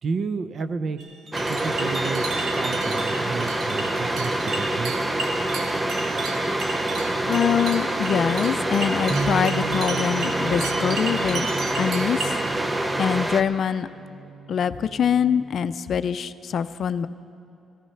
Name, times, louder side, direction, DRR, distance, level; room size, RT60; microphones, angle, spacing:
voice 1, 0.0-1.0 1.3-5.0, right 4 dB, 50° right, 12 dB, 0.6 m, -31 dB
sound 1, 1.0-12.5, right 3 dB, 70° right, 1.3 m, -34 dB
sound 2, 1.3-13.4, right 1 dB, 15° right, 0.8 m, -26 dB
voice 2, 7.3-11.5 11.8-12.2 13.0-13.9 14.5-17.1, left 8 dB, 60° left, 13 dB, 0.4 m, -24 dB
Bass guitar, 9.1-15.3, right 4 dB, 30° right, 1.1 m, -35 dB
14.5 x 14.0 x 5.7 m, 2.8 s
cardioid pair, 90°, 0 cm